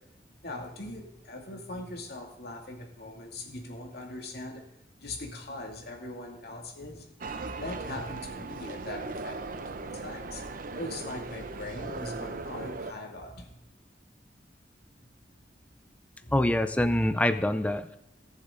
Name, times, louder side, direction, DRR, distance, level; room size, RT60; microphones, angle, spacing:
voice 1, 0.4-4.6 5.0-7.1 7.6-10.4 10.7-13.7 15.0-15.1 16.2-16.3, left 2 dB, 60° left, 0 dB, 2.4 m, -41 dB
sound 1, 7.2-12.9, right 3 dB, 50° right, 0.7 m, -38 dB
voice 2, 16.3-18.0, left 1 dB, 10° left, 10 dB, 0.4 m, -25 dB
18.5 x 7.2 x 3.8 m, 0.88 s
head